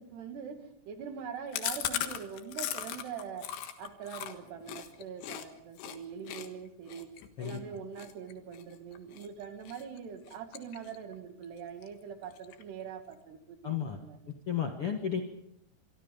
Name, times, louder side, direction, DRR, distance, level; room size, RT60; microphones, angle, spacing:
voice 1, 0.0-3.5 3.8-7.1 7.4-14.2, right 7 dB, 75° right, 6 dB, 4.3 m, -43 dB
Chewing mastication, 1.5-5.4 5.8-6.0 6.3-9.3 9.7-10.0 10.3-11.1 11.4-11.5 11.8-11.9 12.2-12.8, left 11 dB, 90° left, 3.8 m, -38 dB
voice 2, 13.6-14.0 14.3-15.2, left 8 dB, 60° left, 4 dB, 1.5 m, -33 dB
26.5 x 23.5 x 5.3 m, 0.76 s
omnidirectional pair, 4.8 m